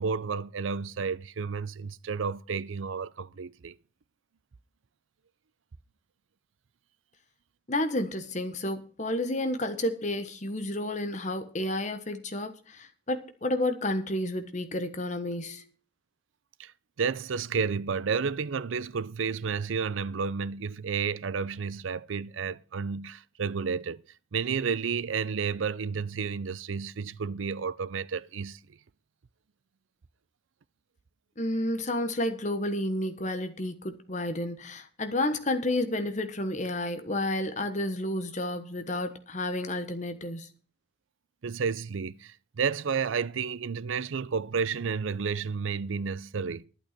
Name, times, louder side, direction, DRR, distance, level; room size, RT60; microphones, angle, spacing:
voice 1, 0.0-3.8 16.6-16.7 17.0-24.0 24.3-28.6 41.4-46.6, right 5 dB, 85° right, 0.5 m, -31 dB
voice 2, 7.7-15.6 31.4-40.5, left 1 dB, 40° left, 1.3 m, -31 dB
11.5 x 8.8 x 5.9 m
head